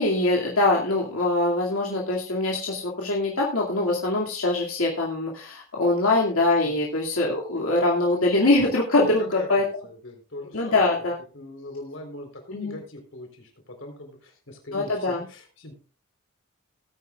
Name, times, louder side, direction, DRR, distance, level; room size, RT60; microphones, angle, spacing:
voice 1, 0.0-9.7 10.5-11.2 12.5-12.8 14.7-15.2, left 2 dB, 85° left, -2 dB, 2.4 m, -23 dB
voice 2, 9.0-10.9 11.3-15.7, left 1 dB, 60° left, 3 dB, 3.9 m, -40 dB
19.0 x 9.3 x 2.4 m, 0.37 s
head